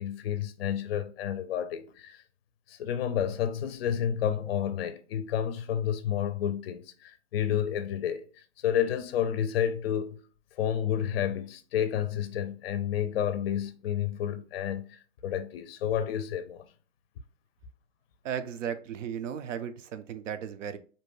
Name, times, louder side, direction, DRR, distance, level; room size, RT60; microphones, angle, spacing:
voice 1, 0.0-2.2 2.7-8.2 8.6-10.2 10.6-16.6, left 9 dB, 55° left, 0.4 m, -30 dB
voice 2, 18.2-20.8, right 8 dB, 75° right, 0.5 m, -35 dB
2.7 x 2.2 x 3.0 m
hypercardioid pair, 145°, 38 cm